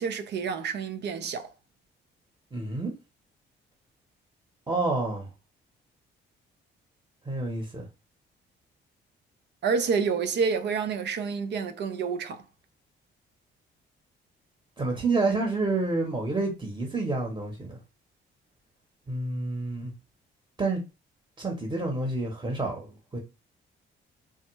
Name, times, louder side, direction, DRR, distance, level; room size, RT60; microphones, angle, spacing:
voice 1, 0.0-1.5 9.6-12.4, right 5 dB, 60° right, 0.5 m, -28 dB
voice 2, 2.5-2.9 4.7-5.3 7.2-7.9 14.8-17.8 19.1-19.9 20.6-20.8 21.4-23.2, right 3 dB, 20° right, 0.9 m, -29 dB
3.4 x 2.1 x 3.0 m
cardioid pair, 90°, 20 cm